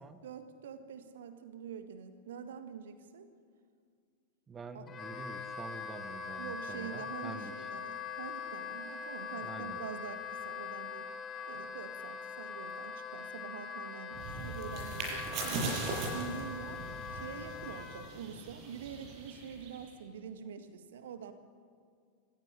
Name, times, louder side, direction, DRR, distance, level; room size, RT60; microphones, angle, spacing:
voice 1, 0.2-3.3 4.7-4.8 6.4-11.1 11.5-16.8 17.1-21.3, right 7 dB, 60° right, 10 dB, 1.8 m, -45 dB
voice 2, 4.5-7.5 9.4-9.8, right 4 dB, 20° right, 9 dB, 1.7 m, -47 dB
Wind instrument woodwind instrument, 4.9-18.1, left 6 dB, 25° left, 2.5 m, -42 dB
sound 1, 14.1-19.9, right 3 dB, 40° right, 7.7 m, -39 dB
26.5 x 17.5 x 9.9 m, 2.1 s
figure-of-eight pair, 90°, 0 cm